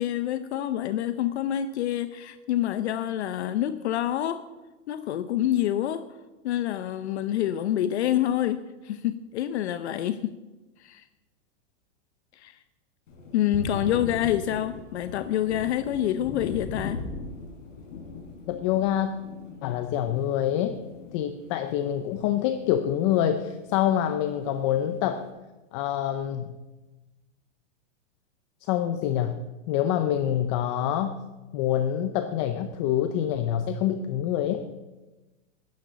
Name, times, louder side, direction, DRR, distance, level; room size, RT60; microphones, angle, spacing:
voice 1, 0.0-4.4 4.9-6.1 6.4-10.3 10.8-11.0 12.4-12.5 13.3-17.0, left 12 dB, 60° left, 12 dB, 0.8 m, -27 dB
Thunder, 13.1-22.8 23.1-24.3, left 3 dB, 85° left, 4.1 m, -40 dB
voice 2, 18.5-19.2 19.6-20.8 21.1-25.3 25.7-26.5 28.6-29.4 29.7-31.1 31.5-34.7, left 10 dB, 25° left, 9 dB, 0.5 m, -26 dB
11.5 x 10.5 x 6.8 m, 1.1 s
supercardioid pair, 155°, 37 cm